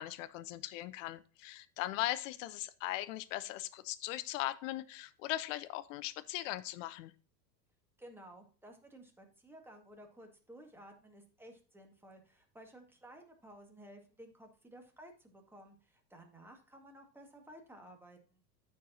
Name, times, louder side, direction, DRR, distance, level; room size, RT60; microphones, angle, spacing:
voice 1, 0.0-7.1, left 15 dB, 50° left, 15 dB, 0.7 m, -39 dB
voice 2, 8.0-18.4, right 1 dB, 5° right, 3 dB, 1.8 m, -55 dB
13.5 x 4.7 x 2.7 m, 0.38 s
figure-of-eight pair, 80°, 50 cm